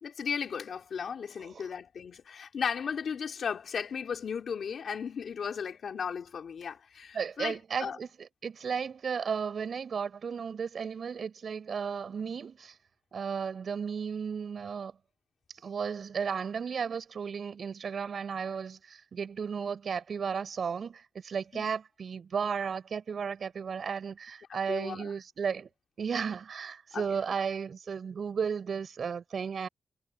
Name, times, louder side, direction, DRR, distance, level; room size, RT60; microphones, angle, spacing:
voice 1, 0.0-8.0 21.5-21.7 24.7-25.1 26.9-27.1, left 6 dB, 70° left, 2.7 m, -35 dB
voice 2, 7.1-12.8 13.1-14.9 15.6-25.7 26.0-29.7, right 6 dB, 60° right, 7.2 m, -34 dB
wide cardioid pair, 115°, 0 cm